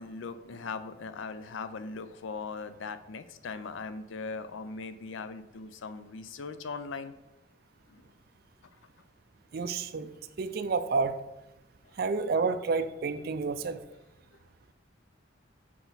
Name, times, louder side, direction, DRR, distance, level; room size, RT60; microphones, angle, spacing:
voice 1, 0.0-7.1 7.9-8.0, left 4 dB, 90° left, 12 dB, 0.5 m, -39 dB
voice 2, 9.5-11.2 12.0-13.8, right 4 dB, 55° right, 10 dB, 0.4 m, -30 dB
6.0 x 4.6 x 4.0 m, 0.96 s
head